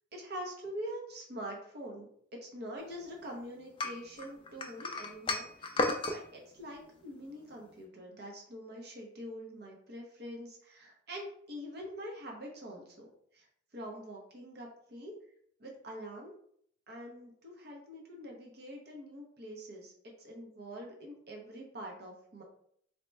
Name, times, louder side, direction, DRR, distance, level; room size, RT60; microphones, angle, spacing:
voice 1, 0.1-2.1 2.3-13.1 13.3-13.5 13.7-15.1 15.6-16.3 16.9-19.9 20.2-22.4, equal, 55° right, -1 dB, 0.7 m, -45 dB
sound 1, 3.8-6.2, left 2 dB, 25° left, 0.3 m, -33 dB
4.0 x 2.8 x 2.2 m, 0.65 s
head